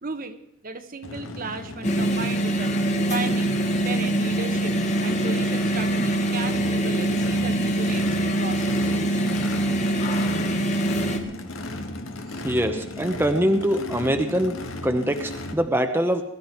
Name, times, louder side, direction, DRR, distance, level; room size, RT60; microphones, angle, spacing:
voice 1, 0.0-2.8 3.1-3.5 3.8-9.1 12.3-12.4, right 4 dB, 45° right, 8 dB, 1.1 m, -35 dB
Race car auto racing / Idling / Accelerating revving vroom, 1.0-15.5, left 1 dB, 75° left, 1.8 m, -36 dB
sound 1, 1.8-11.2, right 1 dB, 35° left, 1.8 m, -24 dB
voice 2, 12.4-14.6 14.8-16.2, equal, 10° right, 5 dB, 1.0 m, -23 dB
21.5 x 12.5 x 4.6 m, 0.82 s
head